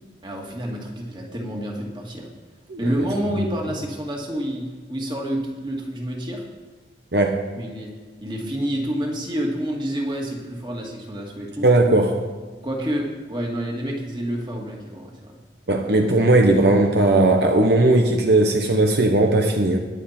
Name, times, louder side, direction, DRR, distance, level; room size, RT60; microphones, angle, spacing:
voice 1, 0.2-2.3 2.8-6.4 7.6-7.9 8.2-11.7 12.6-15.4, equal, 25° right, -1 dB, 2.3 m, -28 dB
voice 2, 7.1-7.5 11.6-12.2 15.7-19.8, right 2 dB, 70° right, 4 dB, 1.0 m, -17 dB
21.0 x 7.6 x 4.4 m, 1.4 s
head